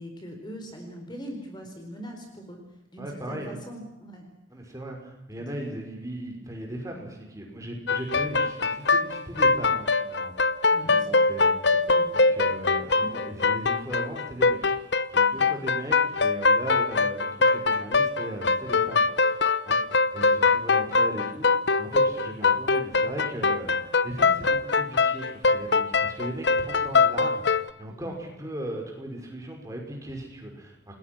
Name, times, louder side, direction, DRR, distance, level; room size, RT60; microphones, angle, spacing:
voice 1, 0.0-4.3 4.7-4.8 5.4-5.5 10.7-11.2 11.8-12.3 13.0-13.1 15.3-15.6 27.9-28.1, equal, 20° left, 3 dB, 4.3 m, -42 dB
voice 2, 3.0-3.6 4.5-10.3 10.8-11.7 12.1-14.8 15.1-19.4 19.6-19.8 20.1-31.0, right 1 dB, 15° right, 1 dB, 5.7 m, -37 dB
sound 1, 7.9-27.7, left 4 dB, 60° left, 1.0 m, -22 dB
29.5 x 20.0 x 6.2 m, 0.95 s
head